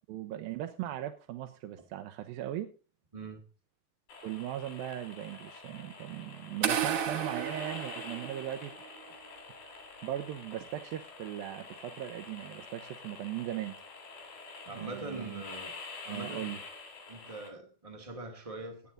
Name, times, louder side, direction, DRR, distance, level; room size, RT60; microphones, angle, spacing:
voice 1, 0.1-2.7 4.2-8.7 9.6-13.8 14.7-15.4 16.1-16.6, right 12 dB, 80° right, 2.5 m, -39 dB
sound 1, 4.1-17.5, left 4 dB, 70° left, 4.8 m, -47 dB
sound 2, 6.6-8.7, right 8 dB, 60° right, 1.6 m, -33 dB
voice 2, 14.7-15.7 16.1-16.5 17.1-18.9, right 2 dB, 45° right, 0.4 m, -42 dB
17.5 x 8.6 x 3.8 m
omnidirectional pair, 4.4 m